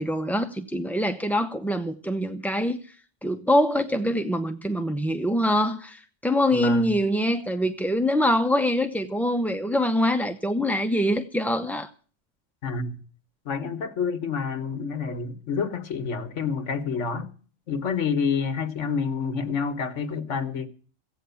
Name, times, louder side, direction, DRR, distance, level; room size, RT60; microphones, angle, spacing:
voice 1, 0.0-2.8 3.2-11.9, equal, ahead, 0.5 m, -24 dB
voice 2, 6.5-6.9 12.6-13.0 13.4-17.3 17.7-20.7, left 5 dB, 75° left, 1.6 m, -28 dB
15.5 x 9.1 x 7.0 m
omnidirectional pair, 1.3 m